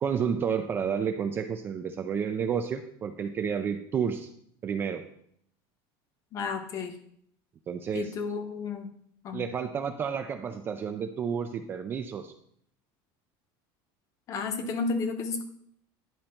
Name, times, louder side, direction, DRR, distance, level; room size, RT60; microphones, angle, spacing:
voice 1, 0.0-4.3 4.6-5.0 7.7-8.1 9.3-12.3, right 7 dB, 20° right, 7 dB, 0.3 m, -30 dB
voice 2, 6.3-6.9 7.9-8.9 9.2-9.5 14.3-15.4, left 4 dB, 30° left, 7 dB, 0.9 m, -32 dB
10.5 x 5.2 x 4.4 m, 0.68 s
cardioid pair, 180°, 11 cm